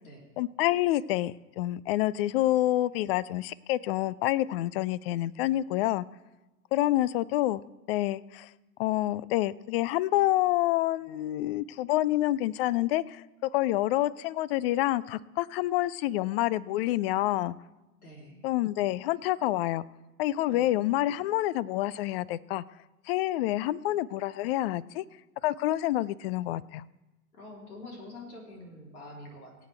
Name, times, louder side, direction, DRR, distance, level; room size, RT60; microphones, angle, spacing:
voice 1, 0.4-6.1 6.7-7.6 7.9-8.5 8.8-17.5 18.4-19.8 20.2-22.6 23.1-25.0 25.4-26.9, left 15 dB, 45° left, 22 dB, 0.4 m, -28 dB
voice 2, 18.0-18.5 20.5-20.9 27.3-29.7, left 1 dB, 75° left, -1 dB, 3.7 m, -46 dB
24.0 x 8.3 x 3.4 m, 1.1 s
figure-of-eight pair, 85°, 44 cm